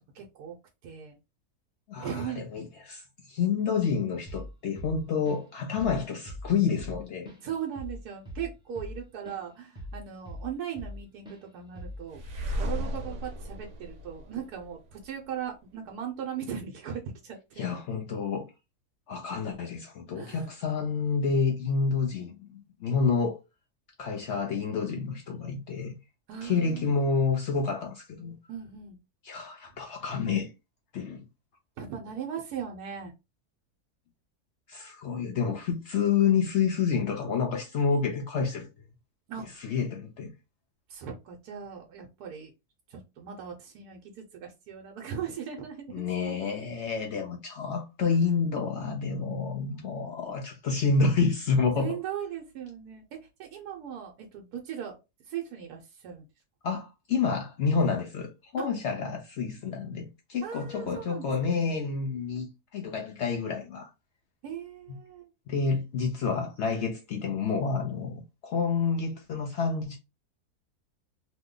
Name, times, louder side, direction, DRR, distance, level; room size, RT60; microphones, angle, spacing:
voice 1, 0.1-0.6 0.8-1.2 2.0-2.6 7.4-12.2 12.6-17.7 20.1-20.5 26.3-26.9 28.5-29.0 31.8-33.1 39.3-39.6 40.9-42.5 42.9-46.4 48.1-48.2 51.8-55.0 55.2-56.3 58.6-58.7 60.4-61.8 64.4-65.3, right 8 dB, 85° right, 1.2 m, -38 dB
voice 2, 1.9-2.3 2.5-7.3 17.6-18.4 19.1-23.4 24.0-26.0 26.4-28.4 29.2-30.5 30.9-31.2 34.7-38.7 39.6-40.3 45.9-51.9 56.6-63.9 65.5-70.0, left 5 dB, 65° left, 0.7 m, -29 dB
Drum kit / Drum, 4.3-4.5 4.8-5.5 5.8-6.0 6.3-9.4 9.8-11.0 11.3-11.4 11.8-12.1, left 1 dB, 5° right, 0.6 m, -41 dB
sound 1, 12.1-15.1, equal, 60° right, 1.1 m, -35 dB
3.0 x 2.2 x 3.6 m
omnidirectional pair, 1.6 m